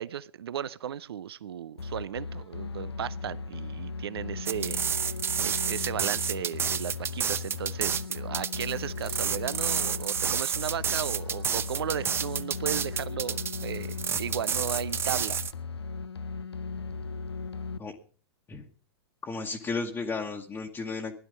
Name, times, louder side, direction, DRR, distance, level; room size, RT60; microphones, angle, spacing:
voice 1, 0.0-5.1 5.4-15.4, right 9 dB, 70° right, 18 dB, 0.6 m, -35 dB
sound 1, 1.8-17.8, left 4 dB, 80° left, 0.7 m, -37 dB
sound 2, 4.5-15.5, right 7 dB, 20° right, 0.7 m, -30 dB
voice 2, 19.2-21.1, left 4 dB, 15° left, 0 dB, 1.4 m, -33 dB
16.0 x 11.0 x 5.2 m, 0.42 s
figure-of-eight pair, 105°, 13 cm